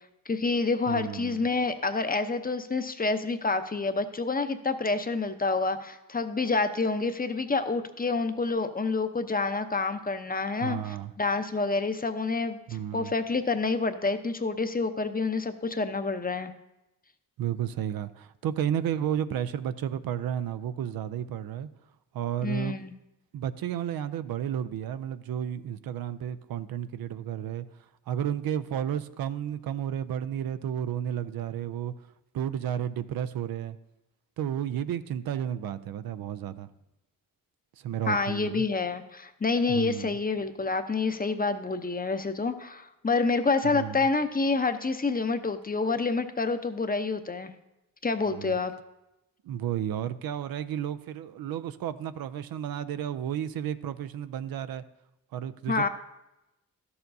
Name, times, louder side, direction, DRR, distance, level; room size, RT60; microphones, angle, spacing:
voice 1, 0.3-12.6 12.9-16.5 22.4-22.9 38.1-47.5 48.0-48.7 55.7-55.9, left 3 dB, 25° left, 9 dB, 0.7 m, -28 dB
voice 2, 0.9-1.5 10.6-11.1 12.7-13.1 17.4-21.7 22.1-22.8 23.3-27.6 28.1-31.9 32.3-33.8 34.4-36.7 37.8-38.6 39.7-40.2 43.6-44.1 48.3-48.6 49.4-54.8 55.3-55.9, right 10 dB, 75° right, 13 dB, 0.5 m, -32 dB
12.0 x 6.9 x 2.6 m, 0.93 s
cardioid pair, 50°, 36 cm